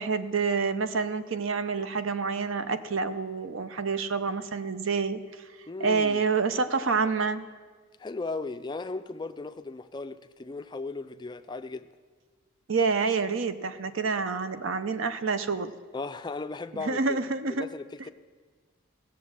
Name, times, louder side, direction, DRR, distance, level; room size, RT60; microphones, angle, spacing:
voice 1, 0.0-5.4 5.8-7.5 12.7-15.7 16.7-17.7, right 5 dB, 60° right, 0.6 m, -28 dB
voice 2, 5.7-6.2 8.0-11.9 15.9-17.2 17.5-18.1, left 3 dB, 20° left, 0.3 m, -36 dB
17.0 x 7.2 x 7.4 m
head